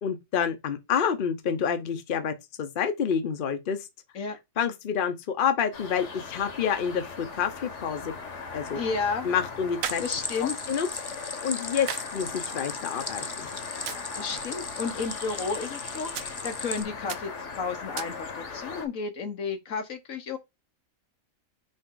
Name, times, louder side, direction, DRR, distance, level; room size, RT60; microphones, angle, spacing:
voice 1, 0.0-3.8 4.6-8.1 8.5-8.8 9.2-10.0 10.4-10.9 11.2-13.5, left 7 dB, 45° left, 0.9 m, -28 dB
sound 1, 5.7-18.9, left 4 dB, 65° left, 1.5 m, -39 dB
sound 2, 8.6-18.6, right 10 dB, 90° right, 1.0 m, -43 dB
voice 2, 8.7-9.3 10.0-10.5 14.2-20.4, left 5 dB, 85° left, 1.6 m, -32 dB
Stream, 9.8-16.8, left 4 dB, 30° left, 0.4 m, -38 dB
5.2 x 4.7 x 3.8 m
omnidirectional pair, 1.3 m